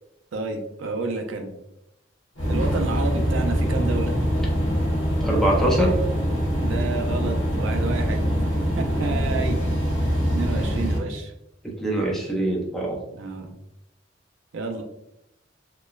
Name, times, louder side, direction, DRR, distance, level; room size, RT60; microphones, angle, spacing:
voice 1, 0.3-1.5 2.5-4.1 6.6-8.3 8.8-9.6 10.3-11.3 13.1-13.5 14.5-14.8, right 3 dB, 85° right, 4 dB, 0.4 m, -30 dB
sound 1, 2.4-11.0, equal, 85° left, 1.2 m, -23 dB
voice 2, 5.2-6.0 11.6-13.0, right 1 dB, ahead, -2 dB, 0.5 m, -23 dB
3.0 x 2.1 x 2.3 m, 0.86 s
head